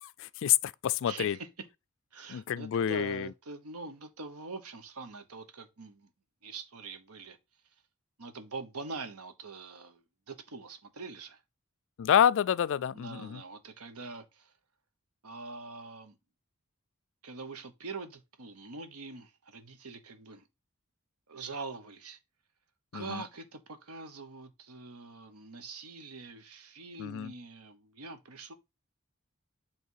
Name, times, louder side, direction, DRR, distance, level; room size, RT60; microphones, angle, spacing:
voice 1, 0.0-1.4 2.3-3.3 12.0-13.4 22.9-23.2 27.0-27.3, left 9 dB, 60° left, 0.3 m, -28 dB
voice 2, 1.1-1.5 2.1-6.1 6.4-7.4 8.2-11.4 12.9-14.5 15.2-16.2 17.2-20.5 21.3-22.2 22.9-28.5, right 3 dB, 85° right, 1.1 m, -44 dB
8.3 x 3.5 x 4.7 m
head